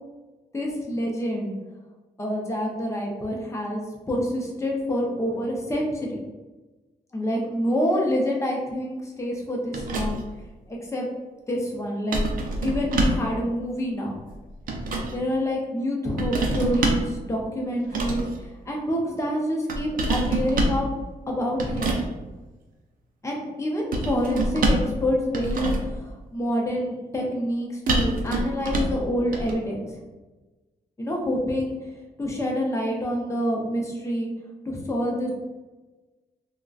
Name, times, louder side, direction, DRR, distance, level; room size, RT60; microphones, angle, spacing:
voice 1, 0.5-1.5 2.2-6.2 7.1-10.2 10.7-11.1 11.5-12.2 12.6-14.1 15.1-20.9 21.3-22.0 23.2-29.8 31.0-31.8 32.2-34.3 34.7-35.3, equal, 20° left, -1 dB, 0.6 m, -27 dB
sound 1, 9.7-10.4 12.1-13.3 14.3-15.2 16.2-17.1 17.8-18.4 19.7-20.8 21.6-22.1 23.9-25.0 25.3-26.0 27.9-29.0 29.3-29.5, right 2 dB, 60° right, 0.5 m, -26 dB
3.7 x 2.2 x 2.3 m, 1.2 s
wide cardioid pair, 140°, 16 cm